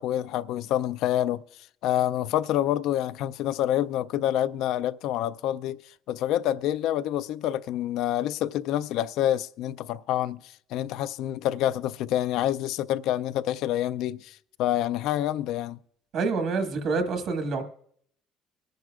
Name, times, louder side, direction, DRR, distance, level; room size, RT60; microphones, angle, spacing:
voice 1, 0.0-1.4 1.8-15.8, left 12 dB, 80° left, 0.4 m, -27 dB
voice 2, 16.1-17.6, right 4 dB, 70° right, 1.6 m, -27 dB
23.5 x 10.5 x 2.4 m
cardioid pair, 95°, 0 cm